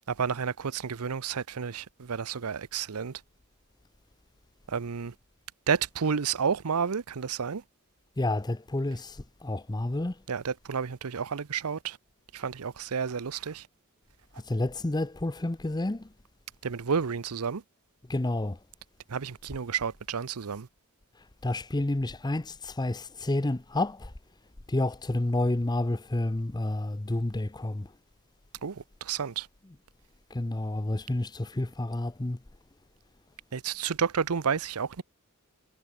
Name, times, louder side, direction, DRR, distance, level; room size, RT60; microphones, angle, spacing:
voice 1, 0.1-3.2 4.7-5.1 5.7-7.6 10.3-12.0 12.3-13.7 16.6-17.6 19.1-20.7 28.6-29.5 33.5-35.0, right 6 dB, 80° right, 0.7 m, -31 dB
voice 2, 8.2-10.2 14.5-16.1 18.1-18.6 21.4-24.1 24.7-27.9 30.3-32.4, left 2 dB, 20° left, 0.6 m, -30 dB
head